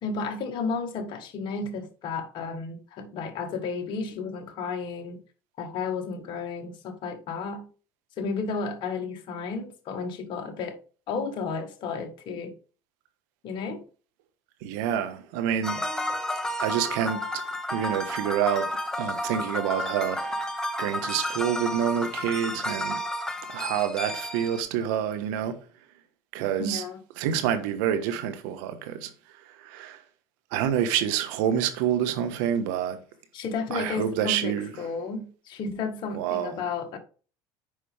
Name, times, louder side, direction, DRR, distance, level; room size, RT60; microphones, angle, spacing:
voice 1, 0.0-5.2 5.6-7.7 8.2-10.8 11.1-12.5 13.4-13.8 26.6-27.0 33.3-37.0, left 4 dB, 55° left, 1.7 m, -32 dB
voice 2, 14.6-15.8 16.6-17.2 17.7-18.7 19.0-20.4 20.8-23.0 23.5-25.6 26.3-26.8 27.2-29.1 29.4-30.0 30.5-33.0 33.7-34.7 36.1-36.6, right 9 dB, 80° right, 1.4 m, -27 dB
sound 1, 15.6-24.6, left 1 dB, 5° left, 1.5 m, -31 dB
8.5 x 5.2 x 3.5 m
supercardioid pair, 90°, 10 cm